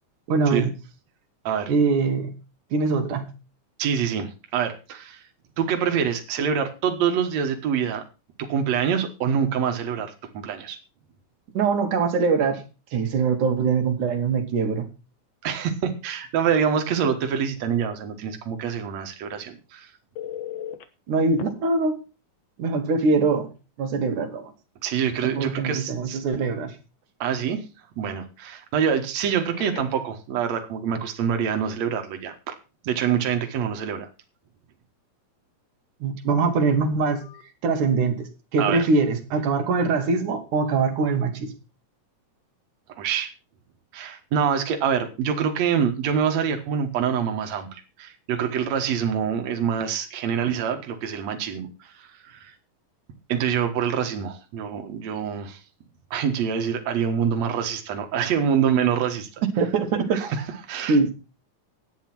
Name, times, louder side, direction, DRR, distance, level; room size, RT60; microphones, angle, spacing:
voice 1, 0.3-0.7 1.7-2.3 2.7-3.3 11.5-12.6 12.9-14.9 21.1-22.0 22.6-23.5 23.8-24.5 25.2-26.8 36.0-37.3 37.6-41.5 59.6-60.2 60.9-61.1, right 4 dB, 85° right, 3.3 m, -23 dB
voice 2, 3.8-5.2 5.6-8.0 8.4-10.8 15.4-19.9 24.8-26.2 27.2-27.6 28.0-32.6 32.8-34.1 38.6-38.9 43.0-43.3 43.9-52.5 53.3-55.6 56.1-59.3 60.1-61.0, right 7 dB, 65° right, 2.7 m, -26 dB
Telephone, 20.2-20.8 21.4-21.5 23.3-23.4 23.8-24.0 29.3-30.1 37.2-37.4, left 10 dB, 60° left, 2.2 m, -37 dB
11.0 x 9.3 x 6.0 m
omnidirectional pair, 3.4 m